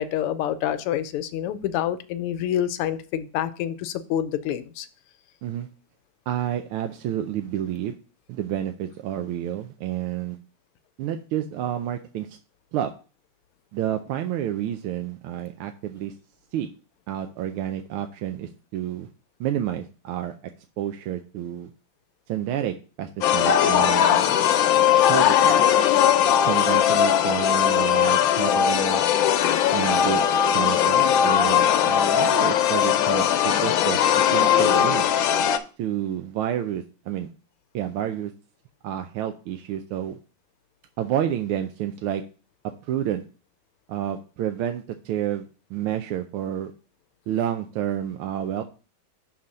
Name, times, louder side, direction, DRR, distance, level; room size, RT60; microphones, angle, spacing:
voice 1, 0.0-4.9, left 10 dB, 90° left, 1.6 m, -27 dB
voice 2, 6.3-7.9 8.3-10.4 11.0-12.4 12.7-12.9 13.7-16.1 16.5-16.7 17.1-19.1 19.4-20.3 20.8-21.7 22.3-24.2 25.1-25.6 26.4-29.0 29.7-30.2 30.5-34.0 34.3-35.0 35.8-37.3 37.7-38.3 38.8-40.2 41.0-42.2 42.8-43.2 43.9-46.7 47.3-48.6, right 11 dB, 80° right, 1.5 m, -29 dB
sound 1, 23.2-35.6, left 9 dB, 70° left, 1.3 m, -19 dB
6.1 x 4.2 x 6.3 m
omnidirectional pair, 2.4 m